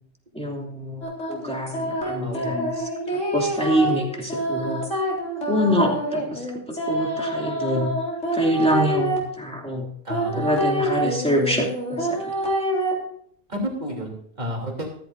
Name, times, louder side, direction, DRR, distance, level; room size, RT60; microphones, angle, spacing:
voice 1, 0.3-4.8 5.5-7.9 8.3-9.9 10.3-12.3, equal, 5° left, -1 dB, 2.8 m, -25 dB
sound 1, 1.0-9.2 10.1-12.9, right 1 dB, 85° left, 4.0 m, -27 dB
voice 2, 2.2-2.6 10.0-10.5 13.5-14.9, equal, 35° right, 0 dB, 3.3 m, -31 dB
14.5 x 14.0 x 2.7 m, 0.65 s
omnidirectional pair, 1.2 m